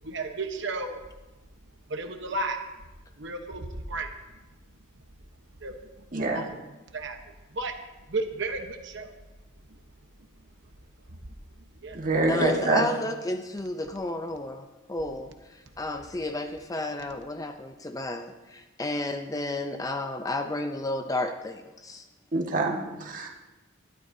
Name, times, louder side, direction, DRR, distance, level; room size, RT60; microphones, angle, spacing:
voice 1, 0.0-1.0 1.9-2.6 3.2-4.4 5.6-5.8 6.3-6.5 6.9-7.7 8.1-9.1 9.7-9.8 10.2-10.3 11.1-11.2 11.6-12.0, right 2 dB, 55° right, 5 dB, 1.0 m, -34 dB
voice 2, 6.1-6.4 11.9-12.9 22.3-23.3, right 2 dB, 40° right, 0 dB, 1.7 m, -26 dB
voice 3, 12.3-15.3 15.8-22.0, left 2 dB, 15° left, 6 dB, 0.5 m, -32 dB
20.5 x 13.0 x 2.7 m, 1.1 s
head